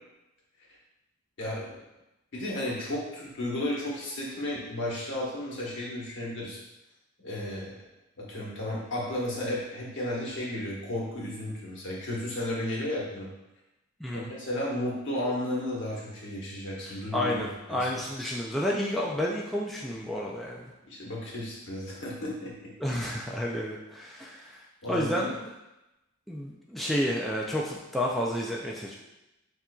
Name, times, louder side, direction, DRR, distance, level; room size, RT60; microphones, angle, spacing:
voice 1, 2.3-6.6 7.2-7.7 8.2-13.3 14.1-17.8 20.9-23.0 24.8-25.3, left 1 dB, 60° left, -5 dB, 1.3 m, -33 dB
voice 2, 16.9-20.7 22.8-24.6 24.9-25.4 26.3-29.0, left 1 dB, ahead, -4 dB, 0.3 m, -30 dB
7.1 x 2.5 x 2.3 m, 0.97 s
head